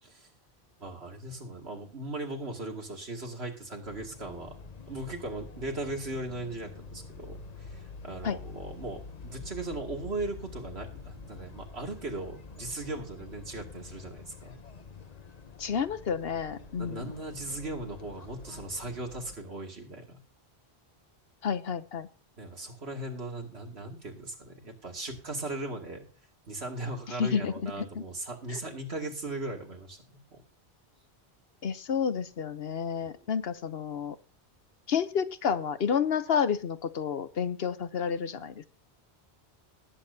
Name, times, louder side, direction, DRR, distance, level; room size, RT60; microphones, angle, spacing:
voice 1, 0.8-4.6 4.9-14.5 16.6-20.2 22.4-26.1 26.5-30.4 33.0-33.2, right 2 dB, 75° right, 2 dB, 2.8 m, -38 dB
sound 1, 3.8-19.4, left 4 dB, 40° left, 1.0 m, -47 dB
voice 2, 15.6-17.1 21.4-22.1 27.2-28.0 28.5-28.6 31.6-34.2 34.9-38.6, left 7 dB, 65° left, 12 dB, 1.1 m, -30 dB
19.0 x 8.8 x 2.8 m, 0.39 s
omnidirectional pair, 1.1 m